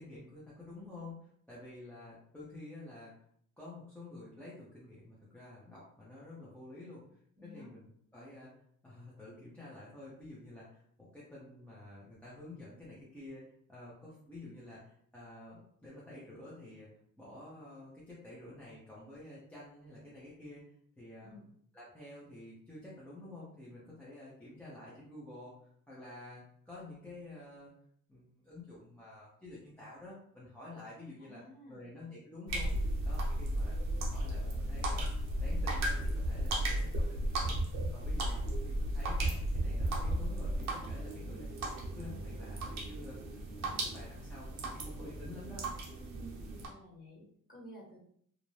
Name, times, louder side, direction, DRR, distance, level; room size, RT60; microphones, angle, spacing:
voice 1, 0.0-3.1 3.6-7.0 7.4-8.5 8.8-21.4 21.7-27.7 28.1-31.4 31.7-32.7 33.1-35.1 35.4-37.6 37.9-41.6 41.9-45.6, left 2 dB, 5° left, -8 dB, 0.6 m, -50 dB
voice 2, 7.4-7.7 21.2-21.5 31.2-32.0 46.1-46.4 46.6-48.0, equal, 25° left, -7 dB, 1.4 m, -53 dB
sound 1, 32.5-46.7, right 1 dB, 60° right, 0.7 m, -35 dB
2.5 x 2.1 x 3.1 m, 0.65 s
cardioid pair, 125°, 32 cm